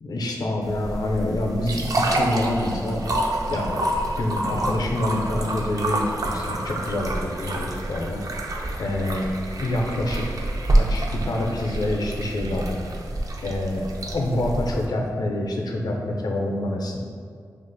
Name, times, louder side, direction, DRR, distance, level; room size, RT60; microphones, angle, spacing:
voice 1, 0.0-3.0 3.5-3.8 4.2-8.2 8.8-9.3 9.6-12.8 13.4-17.0, left 1 dB, 65° left, 1 dB, 0.5 m, -27 dB
sound 1, 0.6-14.9, right 1 dB, 55° right, 0.4 m, -27 dB
2.5 x 2.4 x 3.8 m, 2.2 s
cardioid pair, 45°, 7 cm